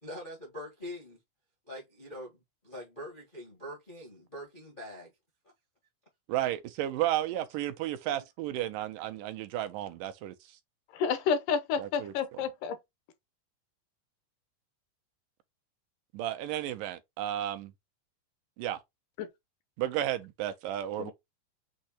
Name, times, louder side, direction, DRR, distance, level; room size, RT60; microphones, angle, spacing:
voice 1, 0.0-1.2 1.7-5.1, equal, 45° left, 0.6 m, -44 dB
voice 2, 6.3-10.3 11.8-12.4 16.1-17.7 18.6-18.8 19.8-21.1, right 13 dB, 85° right, 2.2 m, -33 dB
voice 3, 10.9-12.8 19.2-19.3 21.0-21.1, left 6 dB, 80° left, 2.2 m, -30 dB
6.3 x 2.8 x 2.8 m
omnidirectional pair, 3.9 m